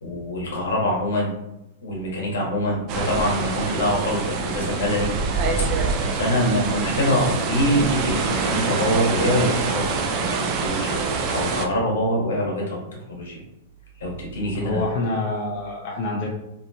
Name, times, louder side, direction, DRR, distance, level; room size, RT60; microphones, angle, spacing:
voice 1, 0.0-1.3 1.8-5.1 5.7-5.9 6.1-11.0 11.3-12.8 13.1-13.4 14.0-14.9, equal, 80° left, -2 dB, 1.0 m, -24 dB
sound 1, 2.9-11.7, right 4 dB, 40° right, 0.4 m, -25 dB
voice 2, 14.5-16.3, left 2 dB, 45° left, -2 dB, 0.5 m, -27 dB
2.6 x 2.2 x 2.7 m, 0.89 s
hypercardioid pair, 125°, 0 cm